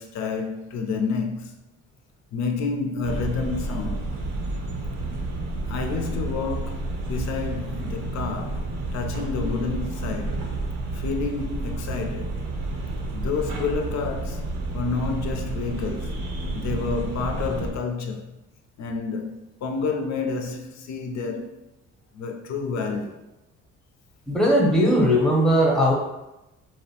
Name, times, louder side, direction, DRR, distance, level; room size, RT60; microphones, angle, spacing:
voice 1, 0.0-1.5 2.3-4.1 5.7-10.4 10.9-12.4 13.1-14.4 14.7-16.2 16.5-18.4 18.8-21.6 22.1-23.2, left 4 dB, 60° left, 0.5 m, -29 dB
sound 1, 3.0-17.7, right 2 dB, 85° right, 0.6 m, -30 dB
voice 2, 24.3-25.9, equal, ahead, 0.7 m, -19 dB
2.6 x 2.0 x 2.7 m
cardioid pair, 90°, 30 cm